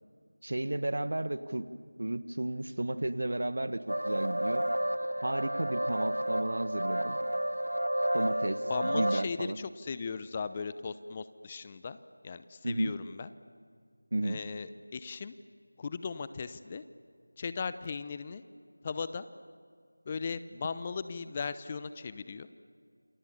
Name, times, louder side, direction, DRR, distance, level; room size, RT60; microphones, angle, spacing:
voice 1, 0.4-1.7 2.0-4.6 5.2-7.2 8.1-9.6 12.6-12.9 14.1-14.4, right 1 dB, 60° right, 14 dB, 1.3 m, -33 dB
sound 1, 3.9-9.2, right 1 dB, 80° right, 0.8 m, -31 dB
voice 2, 8.2-12.0 12.2-13.3 14.2-15.3 15.8-16.8 17.4-18.4 18.8-19.3 20.1-22.5, left 5 dB, 20° left, 13 dB, 0.6 m, -38 dB
28.5 x 26.0 x 7.3 m, 2.2 s
figure-of-eight pair, 170°, 0 cm